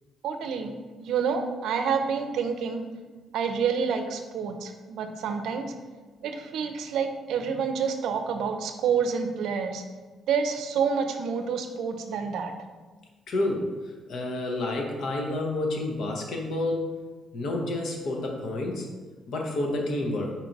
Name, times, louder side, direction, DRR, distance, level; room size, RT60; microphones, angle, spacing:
voice 1, 0.2-2.8 3.3-5.7 6.2-9.8 10.3-12.5, right 6 dB, 80° right, 6 dB, 0.5 m, -28 dB
voice 2, 13.3-13.7 14.1-16.9 17.3-18.9 19.3-20.3, left 2 dB, 70° left, 1 dB, 0.9 m, -29 dB
4.3 x 2.6 x 4.5 m, 1.3 s
cardioid pair, 90°, 0 cm